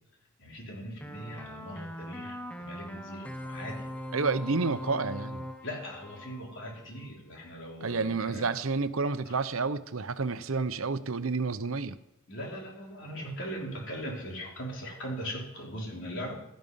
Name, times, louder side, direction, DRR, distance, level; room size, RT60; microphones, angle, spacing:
voice 1, 0.4-3.9 5.6-8.5 9.3-9.4 12.3-16.4, equal, 60° left, 3.9 m, -40 dB
sound 1, 1.0-7.1, equal, 5° left, 1.2 m, -41 dB
voice 2, 4.1-5.5 7.8-12.0, right 4 dB, 75° right, 0.8 m, -30 dB
16.0 x 13.0 x 5.6 m
head